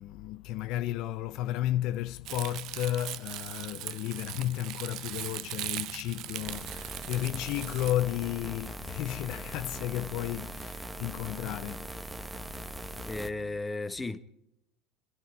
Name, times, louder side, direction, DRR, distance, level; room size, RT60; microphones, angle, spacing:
voice 1, 0.0-12.7 13.3-13.6, left 13 dB, 60° left, 0.5 m, -33 dB
Crumpling crinkling, 2.3-7.9, right 14 dB, 60° right, 0.6 m, -39 dB
sound 1, 6.4-13.3, right 1 dB, 10° right, 1.1 m, -41 dB
voice 2, 13.0-14.2, left 2 dB, 15° left, 1.1 m, -34 dB
26.0 x 11.0 x 4.7 m
supercardioid pair, 110°, 0 cm